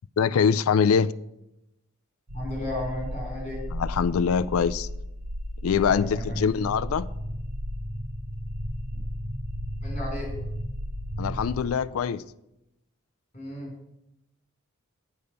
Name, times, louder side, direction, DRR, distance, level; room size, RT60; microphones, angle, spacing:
voice 1, 0.2-1.1 3.7-4.9 5.6-7.1 11.2-12.2, left 6 dB, 80° left, 0.4 m, -23 dB
voice 2, 2.3-3.7 5.9-6.5 9.8-10.3 13.3-13.7, left 1 dB, 35° left, 3.9 m, -34 dB
sound 1, 2.3-11.6, equal, 85° right, 1.3 m, -34 dB
8.6 x 5.5 x 7.9 m
head